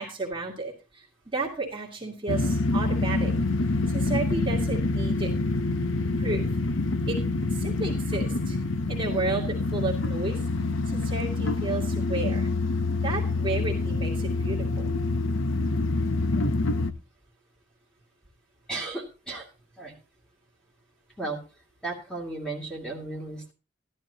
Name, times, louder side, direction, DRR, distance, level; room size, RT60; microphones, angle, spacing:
voice 1, 0.0-3.3 3.9-5.3 6.2-6.4 7.1-7.2 7.5-8.6 8.9-10.4 10.9-12.5 13.0-14.9, right 3 dB, 25° right, -2 dB, 2.2 m, -32 dB
sound 1, 2.3-16.9, left 2 dB, 90° left, 0.8 m, -26 dB
voice 2, 18.7-19.5 19.8-19.9 21.2-21.4 21.8-23.5, right 2 dB, 5° left, -1 dB, 2.6 m, -34 dB
13.5 x 12.0 x 2.9 m, 0.32 s
head